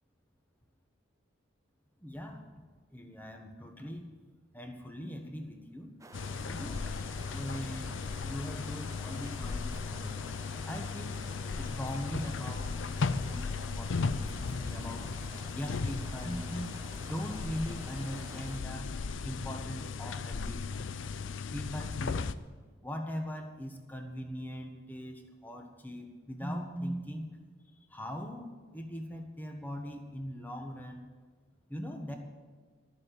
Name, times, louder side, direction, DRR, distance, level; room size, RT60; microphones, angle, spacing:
voice 1, 2.0-2.5 2.9-4.1 4.5-5.9 6.4-6.8 7.3-8.0 8.2-10.2 10.7-11.2 11.6-15.1 15.5-18.9 19.2-20.9 21.5-22.3 22.8-27.3 27.7-31.1 31.7-32.2, equal, 10° left, 3 dB, 1.4 m, -40 dB
sound 1, 6.0-18.6, right 2 dB, 15° right, 0.6 m, -51 dB
sound 2, 6.1-22.3, left 4 dB, 75° left, 0.5 m, -36 dB
13.0 x 7.6 x 9.1 m, 1.5 s
head